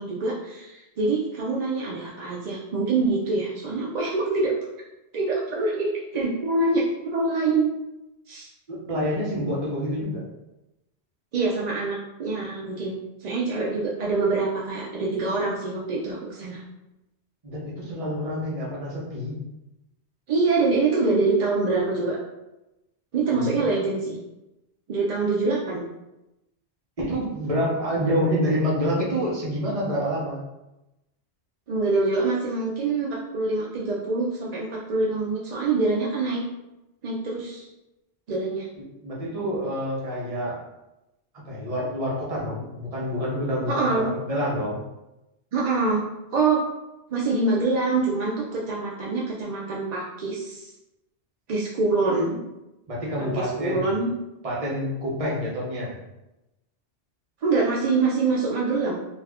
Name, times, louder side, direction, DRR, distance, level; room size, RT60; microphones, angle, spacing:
voice 1, 0.0-4.5 5.1-7.7 8.3-8.5 11.3-16.6 20.3-22.2 23.1-24.2 24.9-25.8 31.7-36.4 37.0-37.7 38.3-38.7 43.7-44.1 45.5-46.0 46.3-46.6 47.1-50.7 51.5-52.4 53.2-54.1 57.4-59.0, right 3 dB, 60° right, -5 dB, 0.4 m, -25 dB
voice 2, 8.7-10.2 17.4-19.4 23.3-23.5 27.0-30.4 39.0-40.6 41.4-44.8 52.9-53.9 54.4-55.9, equal, 35° right, -5 dB, 0.8 m, -27 dB
2.5 x 2.3 x 3.3 m, 0.96 s
omnidirectional pair, 1.1 m